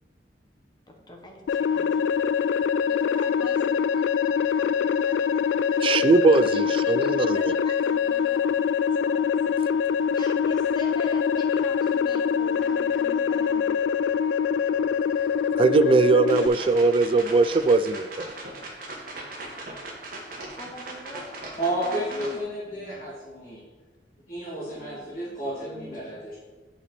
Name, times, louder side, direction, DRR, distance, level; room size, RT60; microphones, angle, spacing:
voice 1, 0.9-2.3 2.9-8.7 9.0-9.6 10.1-13.7 20.6-21.3 21.8-23.1 24.7-25.9, left 1 dB, 25° left, 1.2 m, -44 dB
sound 1, 1.5-16.5, left 7 dB, 85° left, 0.3 m, -24 dB
voice 2, 5.8-7.5 15.6-18.3, right 3 dB, 30° right, 0.3 m, -20 dB
sound 2, 16.3-22.4, right 2 dB, 55° right, 1.5 m, -39 dB
voice 3, 21.6-23.6 24.3-26.4, right 1 dB, 55° left, 2.3 m, -31 dB
8.8 x 5.5 x 4.1 m
head